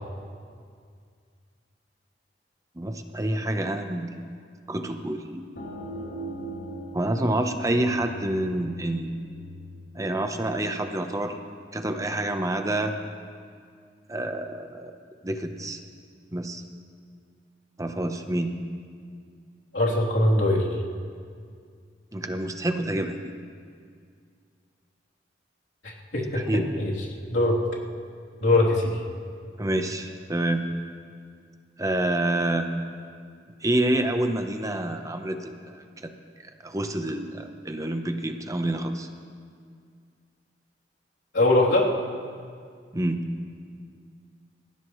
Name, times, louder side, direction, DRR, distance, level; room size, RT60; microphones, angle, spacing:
voice 1, 2.8-4.3 4.7-5.5 6.9-9.2 9.9-11.4 11.7-13.0 14.1-15.0 15.2-15.8 16.3-16.6 17.8-18.5 22.1-23.2 26.3-26.9 29.6-30.7 31.8-32.7 33.6-36.1 36.4-39.1 42.9-43.3, right 1 dB, 20° right, 6 dB, 0.9 m, -28 dB
sound 1, 5.6-11.0, right 1 dB, 70° left, 3.3 m, -40 dB
voice 2, 19.7-20.7 25.8-26.4 26.8-26.9 27.3-27.6 28.4-29.0 41.3-41.9, left 2 dB, 90° left, -5 dB, 3.3 m, -21 dB
27.0 x 15.5 x 3.2 m, 2.2 s
head